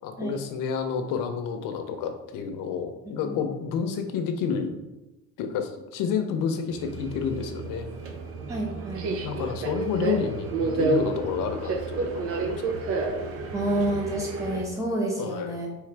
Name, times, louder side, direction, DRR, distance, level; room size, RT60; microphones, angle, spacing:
voice 1, 0.0-4.9 5.4-7.9 9.2-12.9 15.2-15.6, left 6 dB, 90° left, 6 dB, 0.7 m, -30 dB
voice 2, 3.0-3.4 8.5-9.1 13.5-15.8, right 1 dB, 10° right, -3 dB, 1.0 m, -29 dB
Subway metro underground, 6.7-14.6, right 3 dB, 45° right, 0.6 m, -30 dB
4.8 x 3.2 x 3.3 m, 1.0 s
cardioid pair, 155°, 32 cm